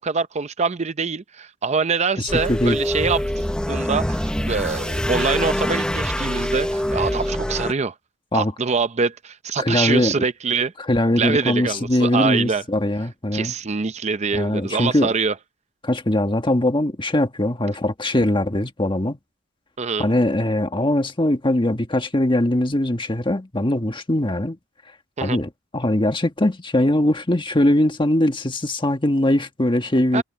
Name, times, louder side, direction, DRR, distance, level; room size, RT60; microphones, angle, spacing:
voice 1, 0.0-7.9 8.3-10.7 11.2-12.6 13.3-15.4 19.8-20.1 25.2-25.4 30.1-30.2, right 5 dB, 35° right, 0.6 m, -24 dB
voice 2, 2.2-2.8 8.3-8.5 9.6-10.2 10.9-13.5 14.3-15.1 15.8-19.2 20.0-24.6 25.2-30.2, left 1 dB, 25° left, 1.5 m, -21 dB
sound 1, 2.3-7.7, equal, 5° left, 0.8 m, -24 dB
head